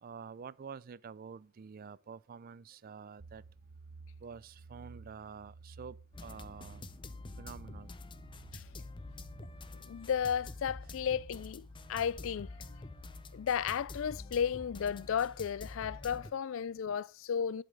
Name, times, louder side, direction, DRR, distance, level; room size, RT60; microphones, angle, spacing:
voice 1, 0.0-3.4 4.2-6.9 7.4-7.9, right 6 dB, 45° right, 0.4 m, -48 dB
sound 1, 3.2-15.1, right 4 dB, 60° right, 0.8 m, -56 dB
sound 2, 6.1-16.3, left 2 dB, 25° left, 0.6 m, -47 dB
voice 2, 9.7-12.8 13.3-17.6, left 7 dB, 65° left, 0.4 m, -34 dB
11.0 x 5.2 x 3.8 m
head